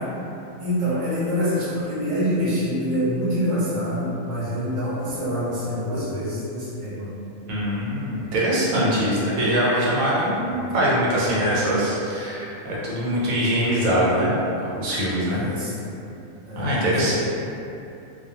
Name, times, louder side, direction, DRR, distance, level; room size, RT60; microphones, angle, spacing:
voice 1, 0.6-7.1 10.5-10.7 15.3-15.7 16.4-17.1, equal, 35° right, -10 dB, 0.6 m, -26 dB
voice 2, 7.5-15.5 16.5-17.1, equal, 80° right, -7 dB, 1.1 m, -23 dB
2.3 x 2.3 x 2.7 m, 2.8 s
omnidirectional pair, 1.4 m